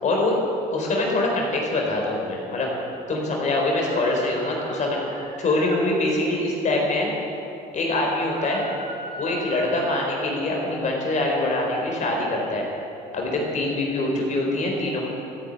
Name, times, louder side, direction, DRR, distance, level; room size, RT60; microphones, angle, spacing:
voice 1, 0.0-0.4 0.7-2.7 3.1-5.0 5.4-7.1 7.7-8.6 9.2-12.6 13.1-15.0, left 2 dB, 45° left, -1 dB, 4.1 m, -24 dB
sound 1, 3.9-5.8 8.3-10.1, right 3 dB, 50° right, 2.8 m, -39 dB
14.0 x 9.7 x 9.2 m, 3.0 s
cardioid pair, 110°, 17 cm